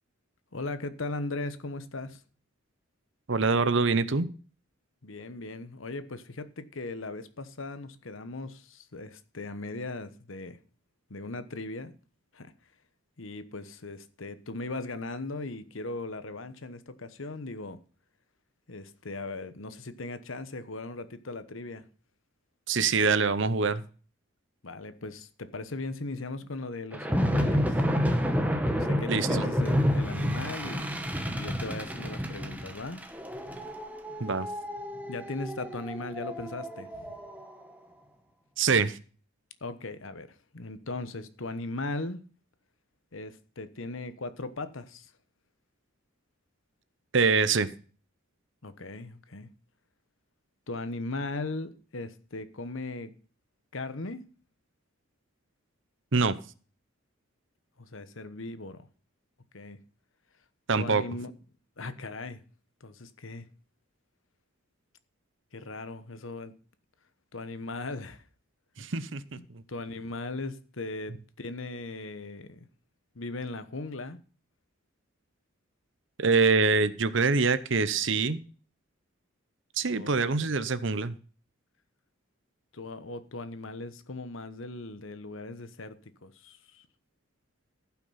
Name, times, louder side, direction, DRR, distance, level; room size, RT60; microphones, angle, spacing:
voice 1, 0.5-2.2 5.0-10.6 11.1-11.9 12.3-12.5 13.2-17.8 18.7-21.8 24.6-27.8 28.7-31.0 31.3-33.0 35.1-37.1 39.6-42.2 43.1-45.1 48.6-49.5 50.7-53.1 53.7-54.2 57.8-58.8 59.5-59.8 60.7-61.3 61.8-62.4 62.8-63.5 65.5-66.5 67.3-68.2 69.4-72.7 73.1-74.2 79.9-80.2 82.7-86.9, left 2 dB, 70° left, 1.1 m, -38 dB
voice 2, 3.3-4.3 22.7-23.8 29.1-29.3 34.2-34.5 38.6-39.0 47.1-47.7 56.1-56.4 60.7-61.0 68.8-69.6 76.2-78.4 79.8-81.1, right 4 dB, 65° right, 0.8 m, -25 dB
sound 1, 26.9-37.5, equal, 5° right, 1.0 m, -29 dB
15.0 x 6.0 x 5.7 m
head